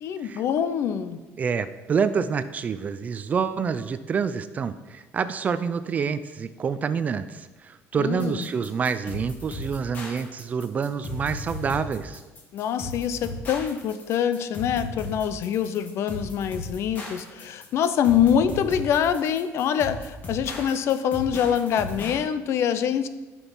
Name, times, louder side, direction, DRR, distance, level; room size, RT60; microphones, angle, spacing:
voice 1, 0.0-1.2 8.0-8.5 12.5-23.1, left 8 dB, 50° left, 12 dB, 0.6 m, -25 dB
voice 2, 1.4-12.2, right 6 dB, 25° right, 12 dB, 0.4 m, -27 dB
sound 1, 8.2-22.2, left 2 dB, 30° left, 1.9 m, -37 dB
10.0 x 6.1 x 5.5 m, 1.2 s
cardioid pair, 165°, 6 cm